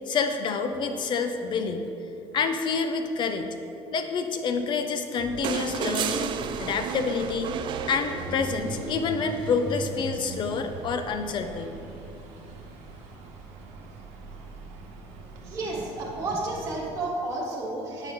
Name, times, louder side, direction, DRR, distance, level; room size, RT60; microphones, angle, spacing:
voice 1, 0.1-1.8 2.3-3.5 3.9-6.3 6.6-7.5 7.9-11.8, left 5 dB, 40° left, 7 dB, 0.6 m, -28 dB
sound 1, 5.2-16.9, right 3 dB, 75° right, 1.1 m, -40 dB
sound 2, 5.4-8.8 10.3-10.4, right 7 dB, 45° right, 0.4 m, -32 dB
voice 2, 15.4-18.1, right 2 dB, 25° right, -5 dB, 1.4 m, -31 dB
9.0 x 5.7 x 3.7 m, 2.8 s
cardioid pair, 135°, 12 cm